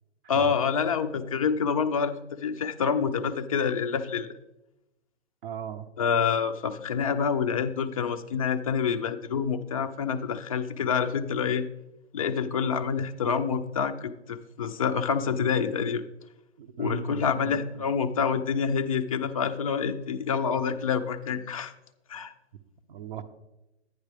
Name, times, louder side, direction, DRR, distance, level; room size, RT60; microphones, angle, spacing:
voice 1, 0.3-4.3 6.0-11.6 12.1-16.0 16.8-21.7 22.1-22.3, left 6 dB, 30° left, 7 dB, 0.4 m, -27 dB
voice 2, 5.4-5.9 16.6-17.7 22.9-23.2, right 7 dB, 50° right, 6 dB, 0.7 m, -37 dB
10.5 x 9.6 x 3.4 m, 0.94 s
hypercardioid pair, 160°, 34 cm